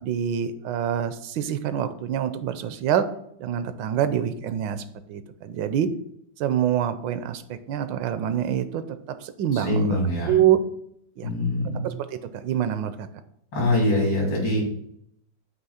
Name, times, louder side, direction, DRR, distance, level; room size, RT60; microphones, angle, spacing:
voice 1, 0.0-3.1 3.4-4.8 5.1-5.9 6.4-8.8 9.2-10.0 10.3-10.6 11.2-11.3 11.8-13.1, right 10 dB, 80° right, 11 dB, 1.3 m, -25 dB
voice 2, 9.5-10.3 11.2-11.9 13.5-14.7, left 1 dB, 75° left, -3 dB, 3.4 m, -23 dB
8.1 x 3.1 x 5.5 m, 0.72 s
omnidirectional pair, 2.0 m